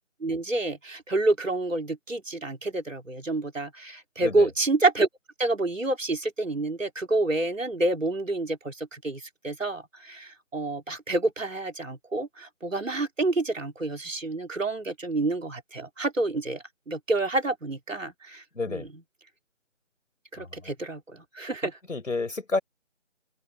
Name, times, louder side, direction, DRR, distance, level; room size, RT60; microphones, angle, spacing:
voice 1, 0.2-5.1 5.4-18.9 20.3-21.8, right 2 dB, 85° right, 4.1 m, -28 dB
voice 2, 18.6-18.9 20.4-20.7 21.9-22.6, left 3 dB, 80° left, 5.2 m, -30 dB
figure-of-eight pair, 175°, 38 cm